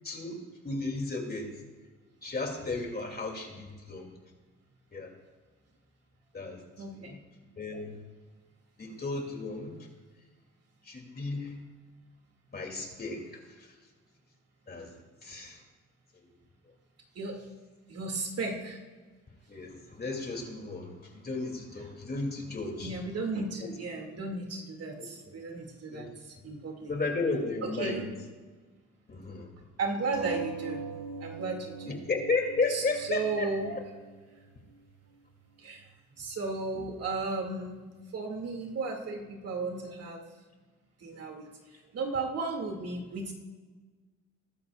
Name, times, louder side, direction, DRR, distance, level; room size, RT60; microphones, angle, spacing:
voice 1, 0.0-1.5 2.2-4.1 4.9-5.1 6.3-6.6 6.9-7.2 7.6-8.0 8.8-9.9 10.8-11.5 12.5-13.7 14.7-14.9 15.2-15.6 19.5-23.0 25.0-25.1 25.9-26.1 26.9-28.1 29.1-29.5 31.9-33.8, left 3 dB, 30° left, 2 dB, 2.8 m, -34 dB
voice 2, 6.8-7.2 17.1-17.4 17.9-18.8 22.8-26.9 27.6-28.1 29.8-30.9 31.2-32.0 32.7-32.8 33.1-33.8 35.6-35.8 36.2-37.8 38.1-40.2 41.0-43.3, right 3 dB, 55° right, 1 dB, 2.5 m, -35 dB
sound 1, 30.1-35.1 35.9-36.0 36.3-36.4, right 4 dB, 75° right, 3.2 m, -42 dB
21.5 x 12.0 x 2.5 m, 1.4 s
cardioid pair, 90°, 30 cm